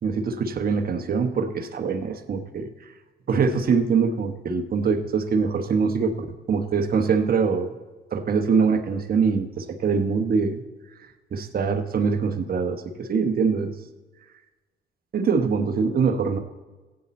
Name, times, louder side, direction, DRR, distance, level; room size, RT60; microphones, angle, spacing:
voice 1, 0.0-2.7 3.3-6.1 6.5-7.7 8.1-10.6 11.3-13.7 15.1-16.4, right 5 dB, 50° right, 6 dB, 1.1 m, -23 dB
15.0 x 8.7 x 4.3 m, 1.2 s
cardioid pair, 90°, 20 cm